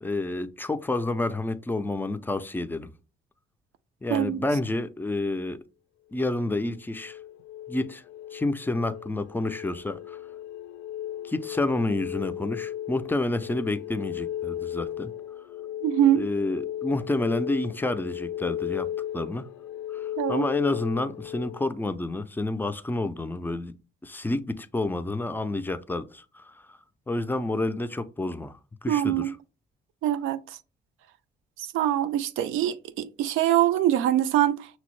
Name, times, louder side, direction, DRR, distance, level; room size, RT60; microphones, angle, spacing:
voice 1, 0.0-2.9 4.0-5.6 6.1-7.2 7.7-8.0 8.3-10.2 11.2-15.1 16.1-19.5 19.9-23.7 24.0-26.8 27.1-29.3, left 2 dB, 10° left, 0.3 m, -29 dB
voice 2, 4.1-4.4 15.8-16.3 20.2-20.5 28.9-29.3 30.0-30.4 31.7-34.7, right 12 dB, 90° right, 0.4 m, -23 dB
sound 1, 6.5-21.6, left 11 dB, 75° left, 0.5 m, -36 dB
5.9 x 2.0 x 3.0 m
cardioid pair, 90°, 20 cm